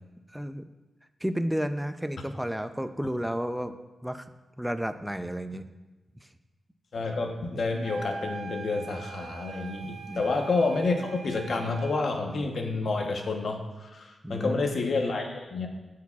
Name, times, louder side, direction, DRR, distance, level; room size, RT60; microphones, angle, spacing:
voice 1, 0.3-0.6 1.2-3.8 4.0-4.3 4.6-5.7 10.1-10.3 14.2-14.7, equal, 5° right, 10 dB, 0.4 m, -32 dB
voice 2, 6.9-15.7, left 3 dB, 65° left, 3 dB, 1.0 m, -29 dB
sound 1, 7.8-12.1, right 4 dB, 80° right, 0.5 m, -42 dB
12.5 x 4.7 x 2.4 m, 1.1 s
wide cardioid pair, 105°, 0 cm